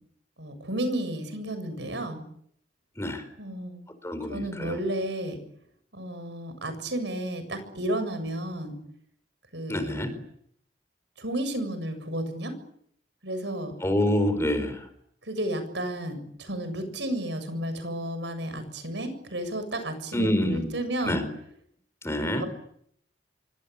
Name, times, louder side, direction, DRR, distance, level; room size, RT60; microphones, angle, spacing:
voice 1, 0.4-2.2 3.4-3.9 4.3-5.4 5.9-8.8 9.5-10.1 11.2-12.6 13.2-13.7 15.2-21.2 22.2-22.5, right 1 dB, 70° right, 10 dB, 7.3 m, -32 dB
voice 2, 4.0-4.8 9.7-10.1 13.8-14.8 20.1-20.7 21.1-21.2 22.0-22.4, left 1 dB, 15° left, 10 dB, 4.5 m, -26 dB
26.5 x 25.0 x 8.5 m, 0.70 s
head